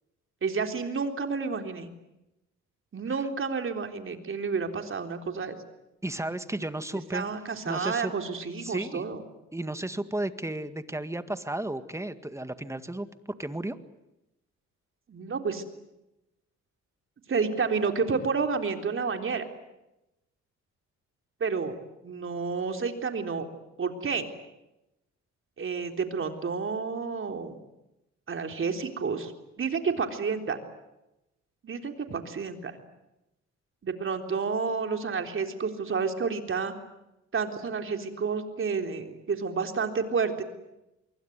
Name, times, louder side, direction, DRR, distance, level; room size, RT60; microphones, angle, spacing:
voice 1, 0.4-1.9 2.9-5.6 7.1-9.2 15.1-15.6 17.3-19.5 21.4-21.8 22.0-23.5 23.8-24.3 25.6-27.6 28.3-29.3 29.6-30.6 31.6-32.8 33.8-36.7 37.3-40.4, right 5 dB, 45° right, 5 dB, 3.8 m, -30 dB
voice 2, 6.0-7.2 7.7-8.1 8.6-9.0 9.5-13.1 13.4-13.8, right 1 dB, 10° right, 10 dB, 1.9 m, -33 dB
25.5 x 23.0 x 9.5 m, 0.92 s
cardioid pair, 90°, 30 cm